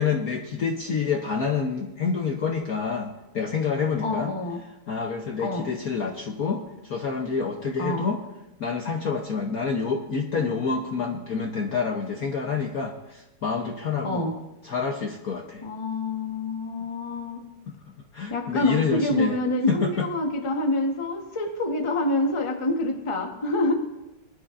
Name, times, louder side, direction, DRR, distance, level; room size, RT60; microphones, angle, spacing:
voice 1, 0.0-4.3 4.9-8.2 8.6-14.3 14.6-15.7 17.7-17.8 18.1-19.4 19.7-20.1, left 5 dB, 55° left, 2 dB, 1.1 m, -28 dB
voice 2, 4.0-4.6 5.4-5.7 7.8-8.1 14.0-14.3 15.6-17.4 18.3-23.7, left 2 dB, 20° left, 3 dB, 0.8 m, -26 dB
21.5 x 11.0 x 2.5 m, 0.97 s
omnidirectional pair, 2.4 m